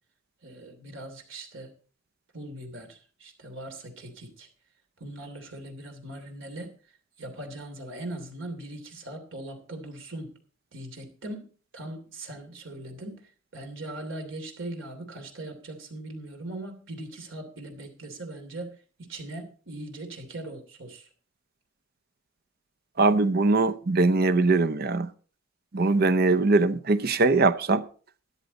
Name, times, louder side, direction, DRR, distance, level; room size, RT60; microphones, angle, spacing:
voice 1, 0.4-1.7 2.3-4.5 5.0-6.7 7.2-10.3 10.7-11.5 11.7-13.1 13.5-18.7 19.1-21.1, right 1 dB, 80° right, 2.9 m, -40 dB
voice 2, 23.0-25.1 25.7-27.8, right 3 dB, 50° right, 0.7 m, -22 dB
13.0 x 10.5 x 4.1 m
head